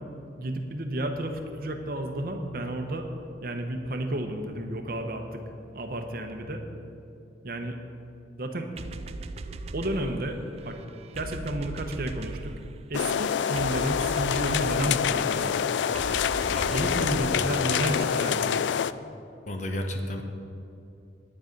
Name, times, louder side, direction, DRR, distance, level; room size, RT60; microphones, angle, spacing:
voice 1, 0.4-3.1 3.4-5.4 5.7-6.6 7.4-7.8 8.4-8.7 9.7-10.4 10.6-10.8 11.1-12.5 12.9-15.7 16.7-18.6, right 1 dB, 55° right, 5 dB, 0.9 m, -31 dB
sound 1, 8.8-18.3, right 3 dB, 35° right, 0.4 m, -40 dB
sound 2, 12.9-18.9, left 8 dB, 80° left, 0.3 m, -26 dB
voice 2, 16.4-16.8 17.2-17.5 19.5-20.2, left 1 dB, 40° left, 4 dB, 1.0 m, -33 dB
10.0 x 9.7 x 5.3 m, 2.7 s
head